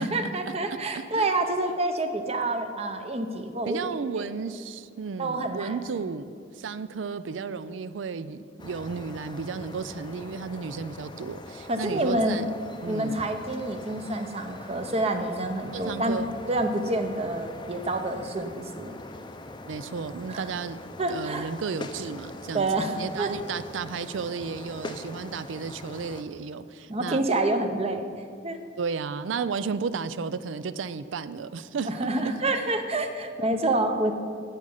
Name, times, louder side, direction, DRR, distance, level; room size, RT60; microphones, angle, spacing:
voice 1, 0.0-3.8 5.2-5.8 11.7-12.4 12.9-16.2 16.5-18.9 20.3-20.5 21.0-21.5 22.5-23.3 26.9-28.1 28.4-28.6 31.8-34.1, right 2 dB, 35° right, 7 dB, 0.7 m, -28 dB
voice 2, 3.7-12.5 12.8-13.3 15.7-16.3 19.6-20.8 21.1-27.2 28.8-32.1, right 5 dB, 85° right, 14 dB, 0.4 m, -33 dB
sound 1, 8.6-26.2, left 2 dB, 25° left, 0.5 m, -42 dB
10.0 x 7.9 x 5.5 m, 2.3 s
head